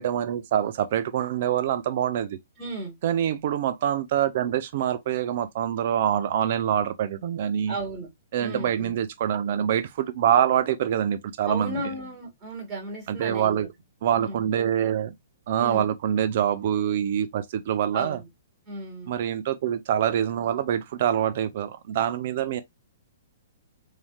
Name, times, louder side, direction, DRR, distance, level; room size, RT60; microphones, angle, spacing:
voice 1, 0.0-2.4 3.0-7.8 8.3-11.9 13.1-13.7 14.0-15.1 15.5-18.2 19.1-22.6, right 10 dB, 55° right, 0.6 m, -25 dB
voice 2, 2.6-3.0 7.7-8.1 8.4-8.9 11.5-13.7 14.2-14.4 15.6-15.8 17.9-18.3 18.7-19.1, right 2 dB, 20° right, 1.9 m, -34 dB
3.2 x 2.8 x 2.3 m
hypercardioid pair, 135°, 0 cm